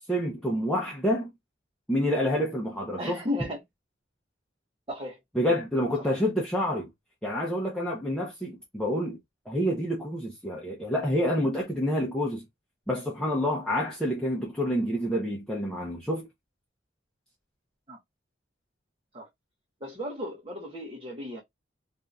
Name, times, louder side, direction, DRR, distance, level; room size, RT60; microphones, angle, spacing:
voice 1, 0.1-1.3 1.9-3.2 5.3-6.9 7.2-9.2 9.5-12.4 12.9-16.3, equal, 5° left, 0.8 m, -28 dB
voice 2, 3.0-3.6 4.9-5.2 6.1-6.2 17.9-18.0 19.1-19.3 19.8-21.4, left 1 dB, 30° right, 1.0 m, -34 dB
2.7 x 2.6 x 3.4 m
head